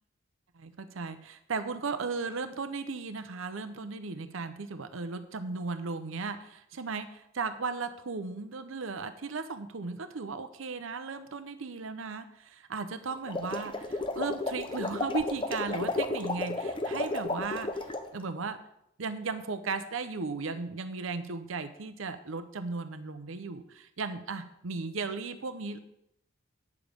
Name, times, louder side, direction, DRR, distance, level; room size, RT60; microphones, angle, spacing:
voice 1, 0.6-18.6 19.0-25.8, right 4 dB, 85° right, 10 dB, 0.7 m, -36 dB
sound 1, 13.2-18.1, left 2 dB, 25° left, 0.7 m, -33 dB
9.5 x 7.1 x 5.1 m, 0.77 s
head